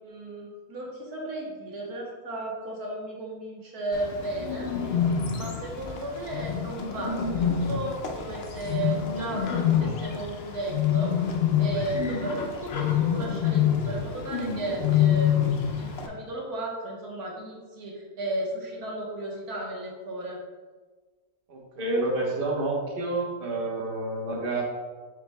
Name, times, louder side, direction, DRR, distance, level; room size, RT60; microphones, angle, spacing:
voice 1, 0.0-5.0 5.3-15.4 15.8-20.4, right 2 dB, 85° right, -1 dB, 1.7 m, -34 dB
Bird, 3.9-16.1, left 8 dB, 55° left, 0.8 m, -27 dB
voice 2, 21.5-24.6, right 2 dB, 40° right, -2 dB, 1.3 m, -29 dB
7.1 x 6.9 x 2.3 m, 1.4 s
omnidirectional pair, 1.6 m